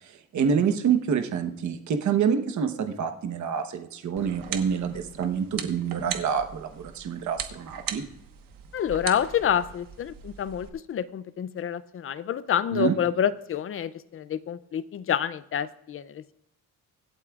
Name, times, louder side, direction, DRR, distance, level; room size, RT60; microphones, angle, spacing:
voice 1, 0.0-8.0 12.7-12.9, right 7 dB, 55° right, 7 dB, 1.1 m, -27 dB
sound 1, 4.2-10.7, right 8 dB, 70° right, 1.3 m, -39 dB
voice 2, 8.7-16.3, left 9 dB, 40° left, 16 dB, 0.4 m, -28 dB
24.5 x 8.3 x 2.4 m, 0.80 s
cardioid pair, 170°, 35 cm